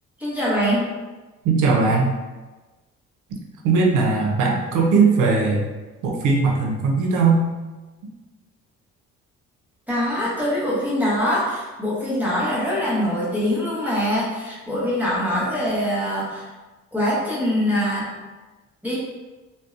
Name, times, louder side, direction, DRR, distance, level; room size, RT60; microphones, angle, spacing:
voice 1, 0.2-0.9 9.9-16.5 16.9-18.1 18.8-19.0, equal, 5° right, -8 dB, 0.8 m, -23 dB
voice 2, 1.4-2.1 3.6-5.7 6.0-7.4, right 4 dB, 90° right, 0 dB, 0.5 m, -19 dB
2.6 x 2.0 x 2.4 m, 1.2 s
cardioid pair, 90°, 30 cm